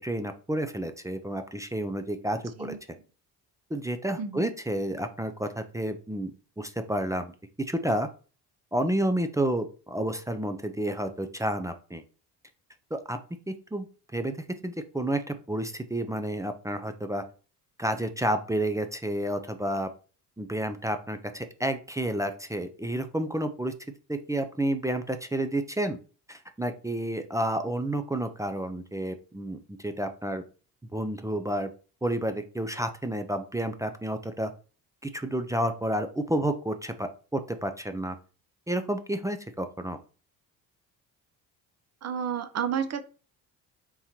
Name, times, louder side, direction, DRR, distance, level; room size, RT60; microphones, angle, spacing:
voice 1, 0.0-2.8 3.7-6.3 6.6-7.3 7.7-8.1 8.7-12.0 12.9-13.2 13.5-13.9 14.1-14.4 14.6-17.2 17.8-19.9 20.4-23.7 24.1-26.0 26.3-30.4 30.9-31.7 32.0-34.5 35.0-38.2 38.7-40.0, right 1 dB, 10° right, 7 dB, 0.4 m, -30 dB
voice 2, 42.0-43.1, right 7 dB, 40° right, 10 dB, 0.7 m, -31 dB
3.8 x 2.8 x 4.3 m, 0.37 s
supercardioid pair, 80°, 41 cm